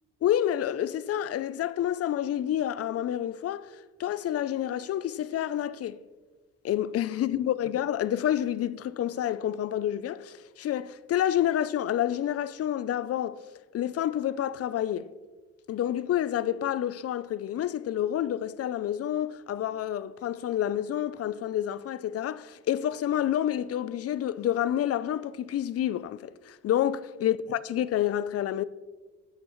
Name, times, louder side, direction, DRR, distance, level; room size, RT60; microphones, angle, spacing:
voice 1, 0.2-6.0 6.6-13.4 13.7-15.1 15.7-28.6, left 11 dB, 50° left, 0.5 m, -29 dB
13.5 x 8.6 x 3.1 m
cardioid pair, 90°, 30 cm